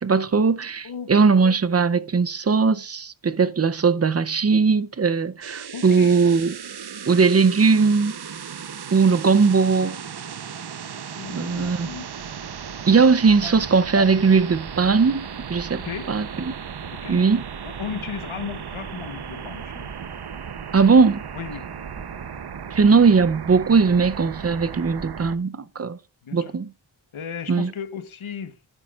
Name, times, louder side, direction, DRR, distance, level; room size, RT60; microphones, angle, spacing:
voice 1, 0.0-6.5 7.1-8.1 8.9-10.0 11.3-11.9 12.9-16.5 17.1-17.4 20.7-21.2 22.7-26.0 26.3-26.7 27.5-27.7, right 5 dB, 35° right, 0.5 m, -19 dB
voice 2, 0.8-1.4 5.7-6.2 9.2-9.3 11.1-12.1 13.4-13.6 15.8-16.1 16.9-17.2 17.6-19.9 21.3-22.0 26.2-26.5 27.1-28.7, left 7 dB, 85° left, 1.1 m, -35 dB
sound 1, 5.4-25.4, right 7 dB, 55° right, 0.8 m, -36 dB
12.0 x 9.9 x 2.4 m
wide cardioid pair, 85°, 47 cm